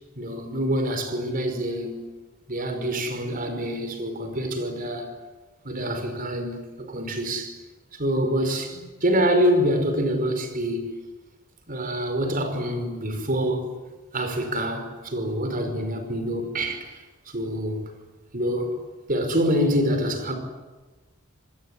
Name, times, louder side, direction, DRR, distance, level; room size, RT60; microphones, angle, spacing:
voice 1, 0.2-2.1 2.5-5.2 5.6-7.5 7.9-11.0 11.7-13.6 14.1-17.9 18.3-18.7 19.1-20.3, equal, 40° right, 5.1 m, -26 dB
27.0 x 21.0 x 9.9 m
head